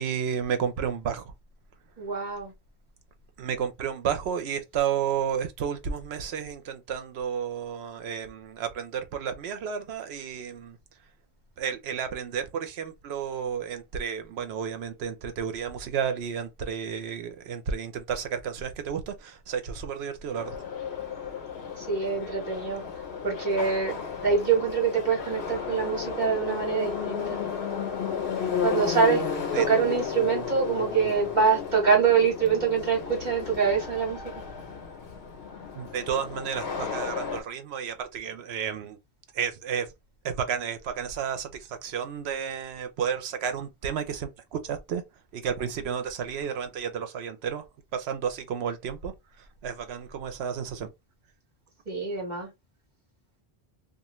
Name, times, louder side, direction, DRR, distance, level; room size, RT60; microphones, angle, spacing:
voice 1, 0.0-1.3 3.4-10.8 11.6-20.6 29.5-29.7 35.7-39.0 39.3-39.9 40.2-45.0 45.3-47.6 47.9-50.9, right 7 dB, 80° right, 0.9 m, -32 dB
voice 2, 2.0-2.5 21.8-22.8 23.2-23.9 24.2-27.4 28.6-29.2 29.5-34.2 51.9-52.5, right 6 dB, 45° right, 1.4 m, -25 dB
Subway metro underground, 20.3-37.4, left 6 dB, 85° left, 1.0 m, -33 dB
2.5 x 2.4 x 3.0 m
omnidirectional pair, 1.1 m